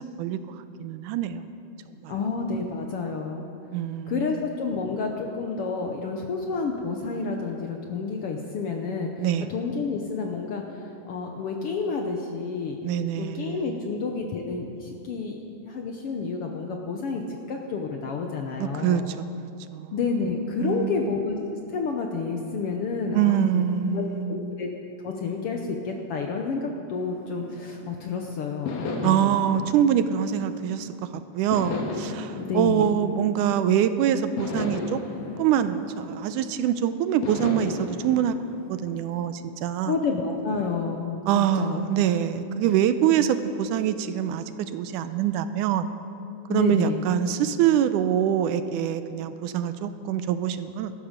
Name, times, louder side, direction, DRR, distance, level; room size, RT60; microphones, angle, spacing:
voice 1, 0.8-1.6 2.0-2.1 3.7-4.3 9.2-9.5 12.8-13.8 18.6-20.0 20.6-21.1 23.1-24.5 29.0-30.9 31.3-35.0 35.4-38.3 38.7-40.0 41.3-45.9 46.5-50.9, right 10 dB, 85° right, 11 dB, 2.1 m, -25 dB
voice 2, 2.1-3.4 4.1-9.1 9.5-10.6 11.0-12.8 13.2-19.0 19.9-21.4 21.7-23.6 23.9-24.7 25.0-29.4 32.4-32.9 39.8-41.8 46.5-47.0, left 4 dB, 70° left, 2 dB, 1.4 m, -30 dB
sound 1, 26.9-28.1 28.6-30.9 31.5-33.8 34.4-36.6 37.2-39.4, left 3 dB, 90° left, 3.0 m, -35 dB
18.0 x 13.5 x 5.1 m, 2.6 s
omnidirectional pair, 3.6 m